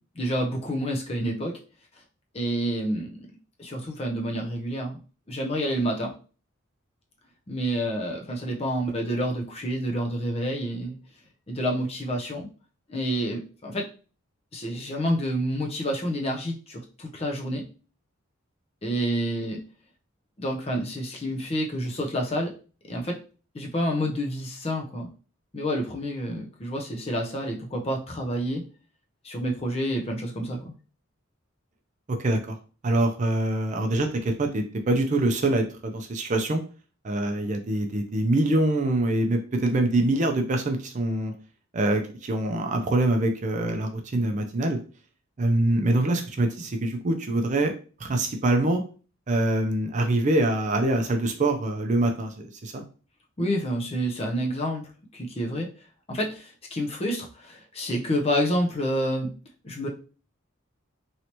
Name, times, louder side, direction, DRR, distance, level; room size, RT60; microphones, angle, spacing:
voice 1, 0.0-1.6 2.3-3.3 3.6-5.0 5.3-6.1 7.5-11.0 11.5-12.5 12.9-13.9 14.5-17.6 18.8-19.6 20.4-22.5 22.9-23.2 23.5-25.1 25.5-28.6 29.2-30.7 53.4-54.8 55.1-55.7 56.1-59.3 59.6-59.9, equal, 30° left, 1 dB, 0.6 m, -28 dB
voice 2, 32.1-32.6 32.8-36.6 37.0-41.3 41.7-44.8 45.4-47.7 48.0-48.8 49.3-52.8, right 2 dB, 35° right, 4 dB, 0.4 m, -24 dB
3.1 x 2.8 x 2.9 m, 0.37 s
head